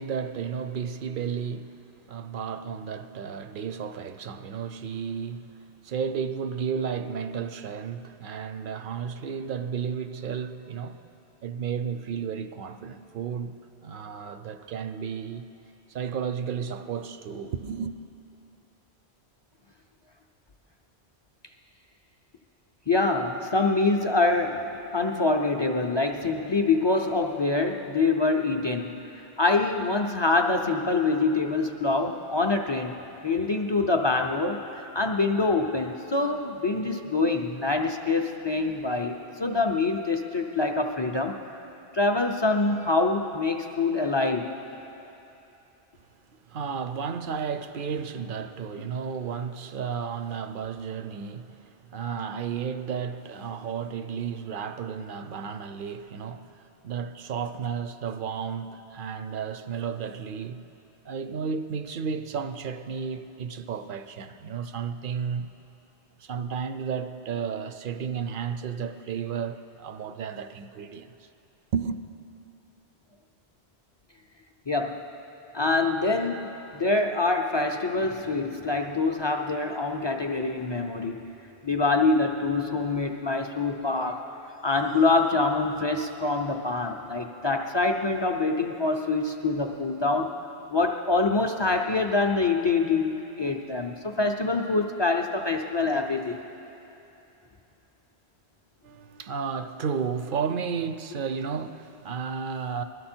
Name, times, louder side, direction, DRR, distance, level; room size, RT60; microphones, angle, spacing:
voice 1, 0.0-1.8 2.1-11.1 11.4-15.5 15.9-17.9 46.5-60.6 61.0-65.5 66.2-71.3 71.7-72.0 98.8-102.8, right 6 dB, 60° right, 0.7 m, -33 dB
voice 2, 22.9-29.0 29.4-32.9 33.2-41.4 41.9-44.5 74.7-75.0 75.5-81.2 81.6-84.2 84.6-90.3 90.7-96.4, left 3 dB, 35° left, 0.4 m, -25 dB
20.5 x 12.5 x 4.4 m
omnidirectional pair, 1.1 m